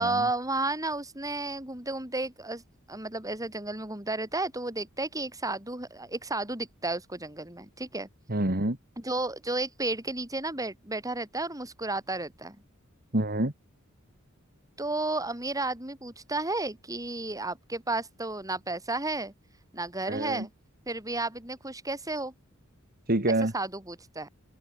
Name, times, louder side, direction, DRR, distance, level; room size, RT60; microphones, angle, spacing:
voice 1, 0.0-2.6 2.9-8.1 9.0-12.6 14.8-19.3 19.7-20.5 20.9-22.3 23.5-24.3, right 2 dB, 15° right, 7.0 m, -32 dB
voice 2, 8.3-8.8 13.1-13.5 20.1-20.5 23.1-23.5, right 1 dB, 45° right, 3.1 m, -27 dB
open air
head